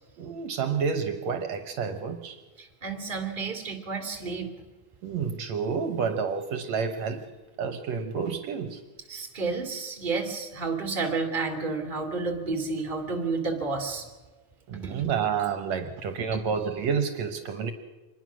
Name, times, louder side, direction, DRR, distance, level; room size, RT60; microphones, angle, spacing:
voice 1, 0.2-2.4 5.0-7.2 7.6-8.8 14.7-17.7, right 6 dB, 70° right, 7 dB, 2.2 m, -29 dB
voice 2, 2.6-4.5 9.1-14.1 14.8-14.9, right 4 dB, 20° right, 4 dB, 2.3 m, -31 dB
25.0 x 20.5 x 6.2 m, 1.2 s
omnidirectional pair, 3.4 m